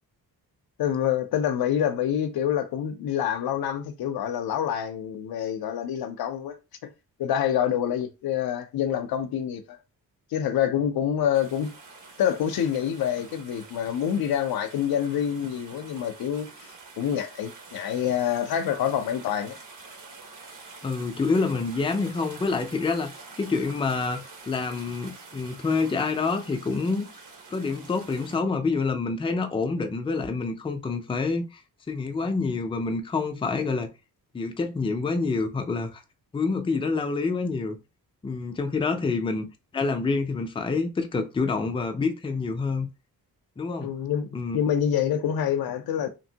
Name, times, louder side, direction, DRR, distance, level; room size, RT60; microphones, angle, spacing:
voice 1, 0.8-6.6 6.8-6.9 7.2-9.8 10.3-11.7 12.2-16.5 17.0-19.6 43.8-46.1, left 9 dB, 80° left, 0.6 m, -26 dB
sound 1, 11.3-28.4, right 3 dB, 55° right, 1.0 m, -47 dB
voice 2, 20.8-23.1 23.4-27.1 27.5-31.6 31.9-33.9 34.3-36.0 36.3-37.8 38.2-39.5 39.7-42.9 43.6-43.9 44.3-44.6, left 4 dB, 15° left, 0.4 m, -27 dB
2.9 x 2.6 x 2.8 m
cardioid pair, 110°, 37 cm